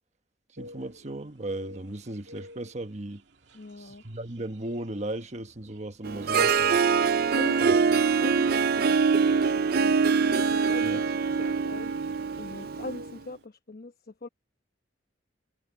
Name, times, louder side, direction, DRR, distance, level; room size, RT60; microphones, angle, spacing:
voice 1, 0.5-3.2 3.8-6.9 7.6-7.8 10.8-11.0, right 1 dB, 40° right, 1.3 m, -36 dB
sound 1, 0.6-13.4, left 1 dB, 75° right, 2.2 m, -53 dB
voice 2, 3.5-4.0 7.3-7.8 8.2-9.0 9.4-10.1 10.5-11.9 12.4-14.3, left 2 dB, 55° left, 1.0 m, -41 dB
Harp, 6.0-13.1, right 5 dB, 55° right, 0.5 m, -24 dB
head